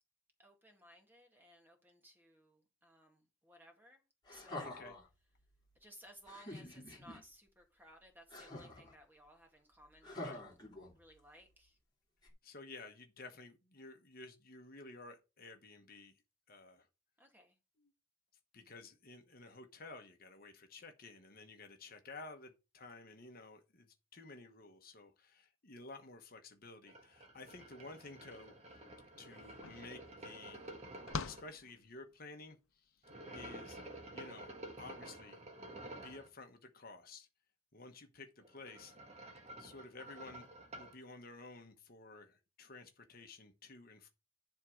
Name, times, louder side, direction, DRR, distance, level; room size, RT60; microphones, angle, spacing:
voice 1, 0.4-4.0 4.3-4.8 5.8-10.6 10.9-11.8 17.2-17.6, equal, 10° right, 1.9 m, -60 dB
sound 1, 4.3-5.1 6.3-7.2 8.3-8.9 10.0-11.2 12.2-12.3, left 1 dB, 20° left, 2.5 m, -47 dB
voice 2, 4.6-4.9 10.2-10.4 12.4-16.2 16.5-16.9 17.8-17.9 18.5-28.8 29.2-30.6 31.2-33.8 34.1-34.5 34.8-35.4 35.9-37.3 37.7-39.0 39.6-44.1, left 3 dB, 45° left, 1.1 m, -53 dB
sound 2, 26.9-31.4 33.0-36.3 38.4-41.0, right 1 dB, 30° right, 1.5 m, -51 dB
sound 3, 29.0-29.1 29.3-32.4, left 5 dB, 85° left, 0.7 m, -46 dB
11.0 x 3.7 x 6.2 m
head